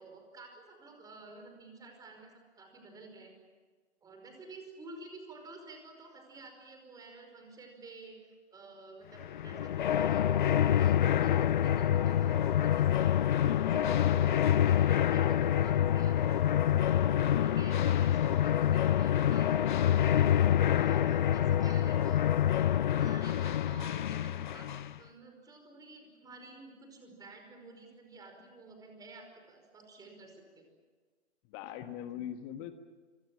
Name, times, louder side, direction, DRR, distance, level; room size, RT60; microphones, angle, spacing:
voice 1, 0.0-3.3 4.0-8.2 8.5-13.1 13.6-16.5 17.1-20.0 20.6-22.3 23.0-24.7 25.0-30.7, right 3 dB, 10° right, 4 dB, 5.2 m, -51 dB
sound 1, 9.2-25.0, left 10 dB, 45° left, 0.9 m, -27 dB
voice 2, 13.4-13.9 31.5-32.7, left 10 dB, 25° left, 9 dB, 1.4 m, -42 dB
26.0 x 26.0 x 7.5 m, 1.5 s
figure-of-eight pair, 125°, 34 cm